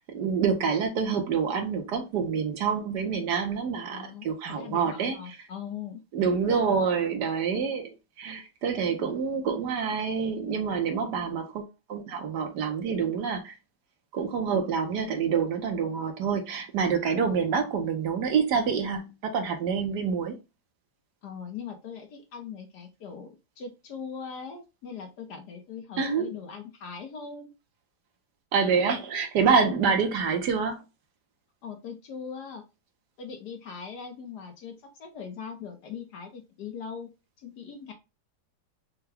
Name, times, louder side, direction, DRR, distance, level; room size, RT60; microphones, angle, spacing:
voice 1, 0.0-5.2 6.1-7.9 8.2-11.6 11.9-13.5 14.1-20.3 26.0-26.3 28.5-30.8, right 6 dB, 70° right, 1.5 m, -27 dB
voice 2, 3.9-6.0 21.2-23.3 23.6-27.5 31.6-32.6 33.2-37.1 37.4-37.9, left 6 dB, 65° left, 1.5 m, -40 dB
5.7 x 2.3 x 3.4 m
omnidirectional pair, 1.9 m